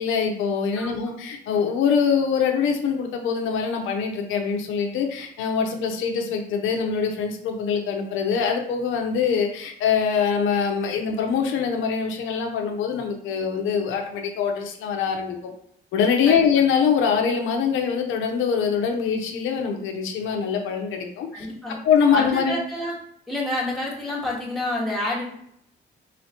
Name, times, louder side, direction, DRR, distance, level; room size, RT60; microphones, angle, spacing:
voice 1, 0.0-15.4 15.9-21.5 21.8-22.6, left 6 dB, 85° left, 3 dB, 0.6 m, -23 dB
voice 2, 21.3-21.8 22.1-22.9 23.3-25.2, left 1 dB, ahead, -5 dB, 1.5 m, -28 dB
4.0 x 3.1 x 2.8 m, 0.71 s
cardioid pair, 90°, 20 cm